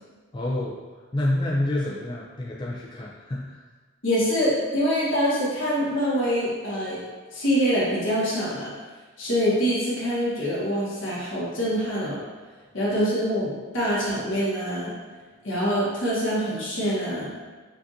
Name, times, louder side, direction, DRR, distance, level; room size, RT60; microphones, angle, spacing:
voice 1, 0.3-0.8 1.1-3.6, left 1 dB, 25° left, -4 dB, 0.4 m, -28 dB
voice 2, 4.0-7.0 7.3-8.7 9.2-12.2 12.7-14.9 15.4-17.3, equal, 70° left, -8 dB, 1.4 m, -25 dB
5.7 x 2.5 x 2.7 m, 1.3 s
head